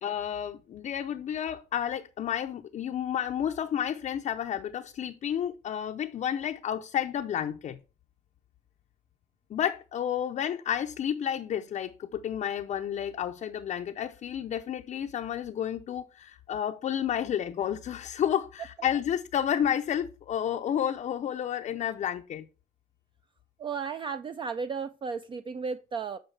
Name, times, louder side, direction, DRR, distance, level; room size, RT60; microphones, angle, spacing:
voice 1, 0.0-7.8 9.5-22.5, left 9 dB, 45° left, 0.5 m, -31 dB
voice 2, 23.6-26.2, right 5 dB, 30° right, 0.4 m, -34 dB
8.9 x 4.6 x 3.2 m
cardioid pair, 110°, 17 cm